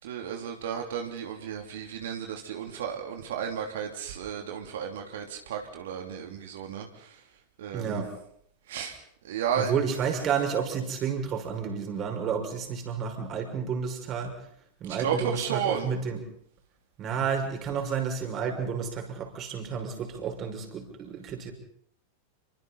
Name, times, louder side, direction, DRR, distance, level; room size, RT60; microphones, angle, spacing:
voice 1, 0.0-7.1 7.6-8.0 8.7-9.0 9.2-9.7 14.9-15.9, right 8 dB, 60° right, 3 dB, 3.2 m, -33 dB
voice 2, 7.7-8.1 9.6-14.4 14.8-16.2 17.0-21.5, right 6 dB, 30° right, 4 dB, 5.5 m, -31 dB
29.5 x 24.5 x 4.3 m, 0.67 s
figure-of-eight pair, 90°, 0 cm